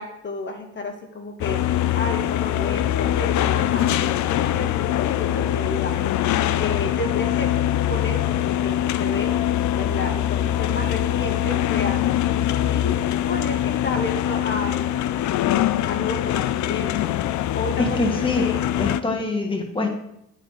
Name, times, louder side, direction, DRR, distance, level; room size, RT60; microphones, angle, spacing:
voice 1, 0.0-7.6 7.9-9.3 9.8-12.1 12.7-15.0 15.9-17.1 17.5-18.6, left 3 dB, 40° left, 3 dB, 1.4 m, -31 dB
sound 1, 1.4-19.0, left 12 dB, 70° left, 0.5 m, -23 dB
voice 2, 17.8-18.5 18.8-19.9, left 3 dB, 15° left, 1 dB, 1.8 m, -24 dB
9.0 x 4.8 x 5.7 m, 0.77 s
cardioid pair, 90°, 30 cm